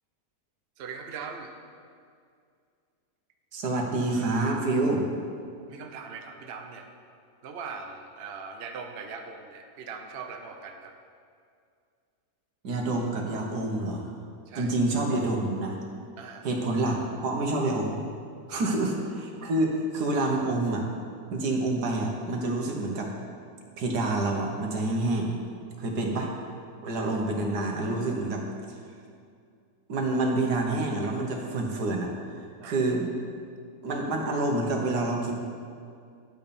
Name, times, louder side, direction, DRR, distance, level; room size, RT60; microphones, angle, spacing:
voice 1, 0.8-1.5 5.6-6.9 7.4-11.0 14.5-14.7 16.2-16.5 18.5-18.7 25.8-26.0 32.6-32.8, right 5 dB, 45° right, 3 dB, 0.9 m, -40 dB
voice 2, 3.5-5.1 12.6-14.1 14.6-15.8 16.4-18.0 18.5-20.9 21.3-23.1 23.8-25.4 25.8-26.3 26.8-28.4 29.9-32.1 32.6-33.1 33.8-35.4, right 2 dB, 80° right, 1 dB, 1.9 m, -27 dB
11.5 x 8.8 x 4.3 m, 2.3 s
omnidirectional pair, 1.7 m